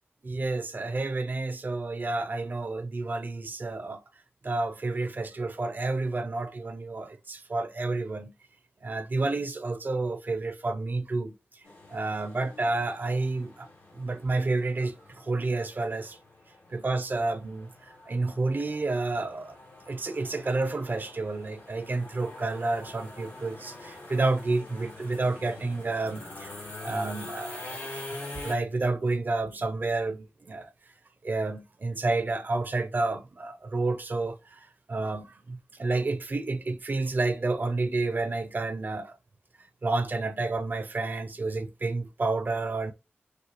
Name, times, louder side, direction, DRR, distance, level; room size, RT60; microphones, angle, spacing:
voice 1, 0.2-4.0 4.4-8.3 8.8-11.3 11.9-13.7 14.0-16.2 16.7-19.5 19.9-26.5 26.8-30.7 31.2-39.1 39.8-42.9, right 3 dB, 50° right, 0.6 m, -30 dB
sound 1, 11.6-28.5, left 2 dB, 80° left, 2.6 m, -45 dB
6.6 x 2.3 x 3.0 m
wide cardioid pair, 70°, 4 cm